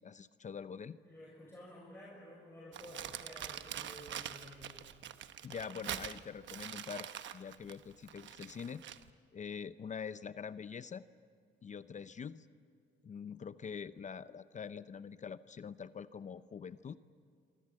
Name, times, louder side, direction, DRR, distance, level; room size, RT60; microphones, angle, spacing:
voice 1, 0.0-1.0 5.4-8.8 9.3-11.0 11.6-12.5 13.0-17.0, left 6 dB, 40° left, 14 dB, 0.6 m, -45 dB
voice 2, 1.0-4.9, left 1 dB, 10° left, -5 dB, 6.8 m, -52 dB
Crumpling crinkling, 2.7-9.1, right 10 dB, 70° right, 1.0 m, -44 dB
27.5 x 24.5 x 7.5 m, 2.2 s
cardioid pair, 90°, 20 cm